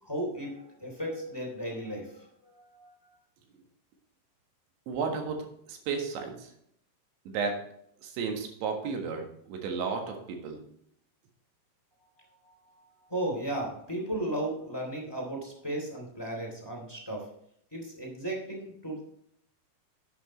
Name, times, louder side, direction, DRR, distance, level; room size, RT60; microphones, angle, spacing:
voice 1, 0.0-2.9 12.4-12.8 13.1-17.3 17.7-19.0, right 1 dB, 10° left, -1 dB, 1.6 m, -35 dB
voice 2, 4.9-6.5 7.3-7.6 8.0-10.6, right 5 dB, 75° right, 3 dB, 3.8 m, -33 dB
11.0 x 8.9 x 3.1 m, 0.71 s
omnidirectional pair, 5.4 m